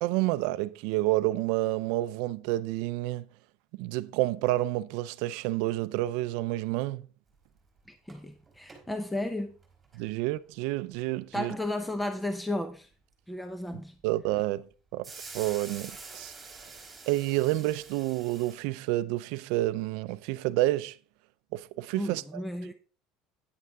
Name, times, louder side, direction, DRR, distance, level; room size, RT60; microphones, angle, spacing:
voice 1, 0.0-3.3 3.8-7.0 9.9-11.5 14.0-14.7 14.9-15.1 15.3-16.3 17.1-21.0 21.5-22.2, right 17 dB, 70° right, 0.5 m, -29 dB
sound 1, 7.4-7.5 7.8-7.9 8.1-8.9 9.4-10.0 10.9-11.0 15.0-18.6, right 4 dB, 10° right, 3.1 m, -46 dB
voice 2, 7.9-9.5 11.3-12.9 13.3-13.9 21.9-22.7, left 1 dB, 5° left, 0.7 m, -34 dB
9.7 x 9.3 x 3.5 m
cardioid pair, 150°, 0 cm